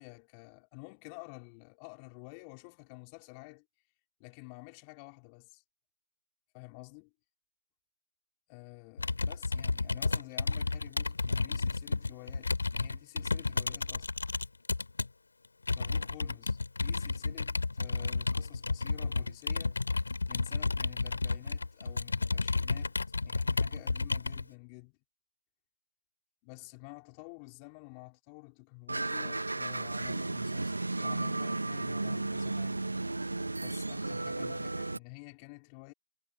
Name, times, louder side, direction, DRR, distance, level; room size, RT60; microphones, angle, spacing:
voice 1, 0.0-3.7 4.2-5.6 6.5-7.1 8.5-14.1 15.8-19.8 20.3-22.9 23.2-25.0 26.4-30.7 31.0-32.8 33.6-35.9, left 34 dB, 15° left, 4.1 m, -50 dB
Computer keyboard, 9.0-15.1 15.7-24.4, left 3 dB, 65° left, 3.4 m, -32 dB
sound 1, 28.9-35.0, right 2 dB, 75° right, 1.3 m, -34 dB
figure-of-eight pair, 155°, 0 cm